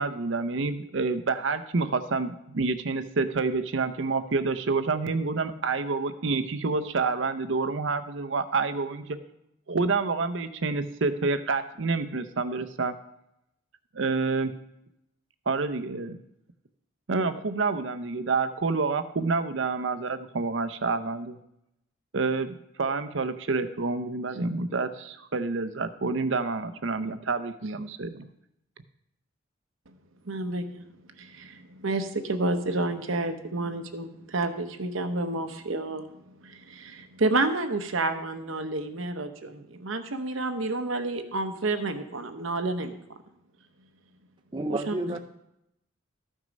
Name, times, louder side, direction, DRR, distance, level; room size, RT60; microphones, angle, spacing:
voice 1, 0.0-9.2 9.7-12.9 13.9-14.5 15.5-16.2 17.1-21.4 22.1-28.3, right 4 dB, 70° right, 10 dB, 0.7 m, -28 dB
voice 2, 30.3-30.9 31.2-36.1 36.4-43.0 44.9-45.2, right 2 dB, 90° right, 7 dB, 1.0 m, -30 dB
voice 3, 44.5-45.2, right 2 dB, 25° right, 6 dB, 0.5 m, -30 dB
13.5 x 6.2 x 5.3 m, 0.83 s
head